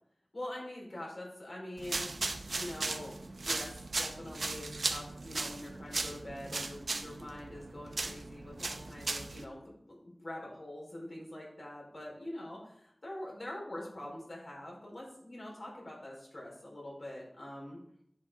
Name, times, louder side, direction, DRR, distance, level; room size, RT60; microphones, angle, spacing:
voice 1, 0.3-2.2 2.5-17.8, left 1 dB, 65° left, -3 dB, 4.6 m, -44 dB
sound 1, 1.8-9.4, right 3 dB, 90° right, 0.7 m, -37 dB
10.5 x 7.1 x 3.9 m, 0.69 s
wide cardioid pair, 50°, 0 cm